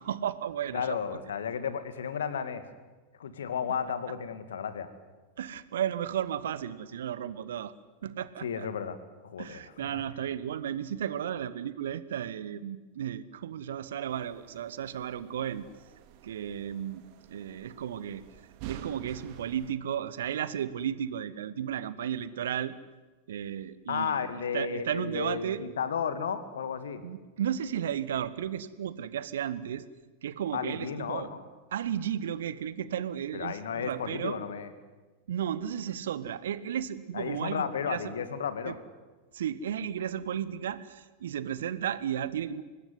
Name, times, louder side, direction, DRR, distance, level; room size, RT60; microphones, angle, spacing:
voice 1, 0.0-1.0 5.4-7.7 8.0-8.7 9.4-15.6 16.2-17.0 17.3-18.2 18.7-22.7 23.3-25.6 27.0-29.8 30.2-31.3 31.7-34.4 35.3-38.1 38.6-38.7 39.3-42.6, right 9 dB, 60° right, 16 dB, 1.2 m, -34 dB
voice 2, 0.7-2.6 3.2-4.9 8.4-9.0 9.2-9.6 9.9-10.0 23.9-27.0 30.5-31.4 33.3-34.7 37.1-38.8, left 7 dB, 65° left, 11 dB, 2.3 m, -33 dB
sound 1, 14.1-19.7, right 10 dB, 45° right, 2.1 m, -48 dB
25.0 x 19.5 x 9.6 m, 1.3 s
figure-of-eight pair, 90°, 0 cm